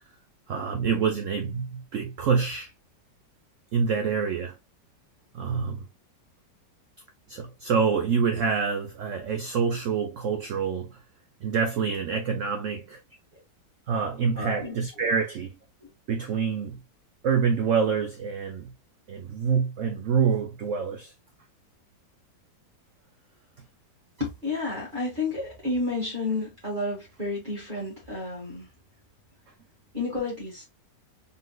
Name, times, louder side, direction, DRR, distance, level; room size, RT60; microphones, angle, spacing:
voice 1, 0.5-2.7 3.7-4.5 5.3-5.8 7.3-11.0 11.4-13.0 13.9-15.5 16.1-16.8 17.2-18.7 19.1-21.1, right 6 dB, 75° right, 0.7 m, -26 dB
voice 2, 14.4-14.8 24.2-28.7 29.9-30.7, left 3 dB, 25° right, 1.7 m, -31 dB
4.0 x 3.7 x 2.3 m
omnidirectional pair, 1.9 m